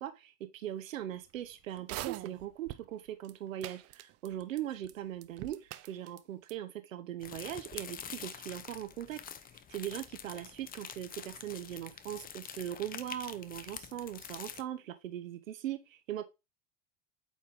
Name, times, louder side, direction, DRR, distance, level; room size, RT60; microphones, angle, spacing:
voice 1, 0.0-16.2, right 12 dB, 90° right, 1.0 m, -40 dB
sound 1, 1.8-2.9 3.2-3.3 3.6-4.6 4.8-4.9 5.2-6.2 6.5-6.6, right 15 dB, 40° right, 0.6 m, -42 dB
sound 2, 7.2-14.6, left 8 dB, 25° left, 0.7 m, -46 dB
8.5 x 4.3 x 3.5 m
hypercardioid pair, 110°, 38 cm